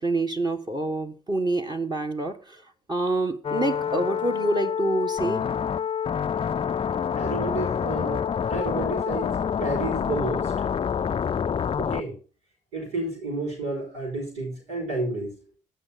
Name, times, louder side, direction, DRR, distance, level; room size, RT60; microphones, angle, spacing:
voice 1, 0.0-2.6 2.9-5.4, right 2 dB, 25° right, 7 dB, 1.7 m, -27 dB
sound 1, 3.4-12.0, left 7 dB, 30° left, 0.5 m, -27 dB
voice 2, 7.2-9.3 9.6-10.5 11.8-12.1 12.7-15.3, right 2 dB, 75° right, -2 dB, 5.4 m, -31 dB
17.0 x 5.8 x 4.2 m, 0.35 s
hypercardioid pair, 50°, 18 cm